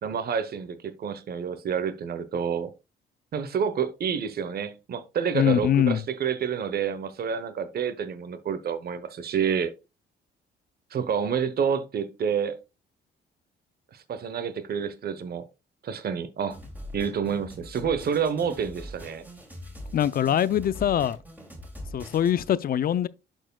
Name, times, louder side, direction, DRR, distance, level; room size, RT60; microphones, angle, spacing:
voice 1, 0.0-2.7 3.3-9.7 10.9-12.6 13.9-15.5 15.8-16.6 16.9-19.2, right 7 dB, 50° right, 0.9 m, -28 dB
voice 2, 5.3-6.0 19.9-21.2 21.9-23.1, left 10 dB, 50° left, 0.5 m, -23 dB
sound 1, 16.5-22.5, equal, 10° right, 2.5 m, -42 dB
12.0 x 4.5 x 2.3 m
cardioid pair, 90°, 20 cm